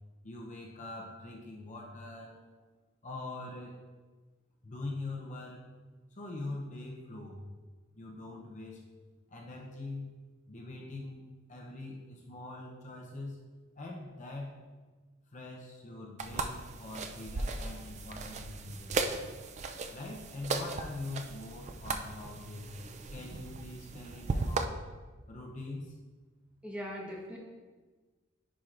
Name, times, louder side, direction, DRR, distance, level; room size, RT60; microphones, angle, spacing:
voice 1, 0.2-2.4 3.0-3.8 4.6-5.6 6.1-7.4 7.9-8.8 9.3-10.2 10.5-11.2 11.5-13.5 13.8-14.7 15.3-19.1 19.9-22.7 23.1-24.8 25.3-25.9, left 2 dB, 40° left, -1 dB, 0.7 m, -43 dB
sound 1, 16.2-24.6, right 3 dB, 35° right, 0.3 m, -37 dB
voice 2, 26.6-27.4, equal, 5° right, -3 dB, 1.1 m, -40 dB
10.0 x 4.6 x 2.5 m, 1.3 s
head